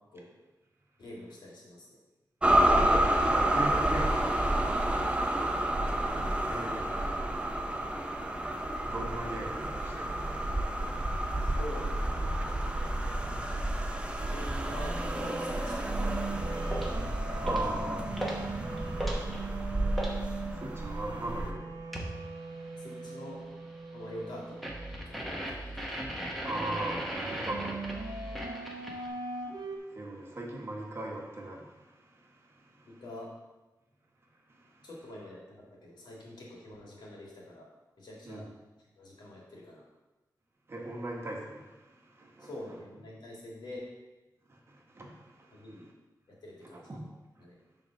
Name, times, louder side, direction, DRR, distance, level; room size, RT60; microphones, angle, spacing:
voice 1, 1.0-2.0 11.4-12.3 14.2-16.2 16.5-16.7 17.4-17.9 22.7-23.4 23.9-24.7 25.1-26.2 32.8-33.3 34.8-37.7 38.0-38.4 39.0-39.9 42.4-43.9 45.5-45.9 46.4-46.9 47.4-47.6, left 1 dB, 85° left, -3 dB, 1.9 m, -46 dB
sound 1, 2.4-21.5, right 1 dB, 15° right, 0.5 m, -30 dB
voice 2, 3.0-11.6 17.4-18.4 18.8-22.9 26.4-33.0 34.5-34.9 38.2-38.5 40.7-42.8 44.5-45.9 46.7-47.1 47.4-47.5, right 2 dB, 35° right, -1 dB, 1.2 m, -42 dB
sound 2, 9.9-29.8, right 3 dB, 80° right, 0.7 m, -42 dB
sound 3, 16.7-17.0 17.5-17.8 18.2-18.5 18.8-20.2 21.9-22.2 24.6-29.1, equal, ahead, 1.0 m, -37 dB
7.2 x 3.6 x 5.7 m, 1.1 s
wide cardioid pair, 160°, 7 cm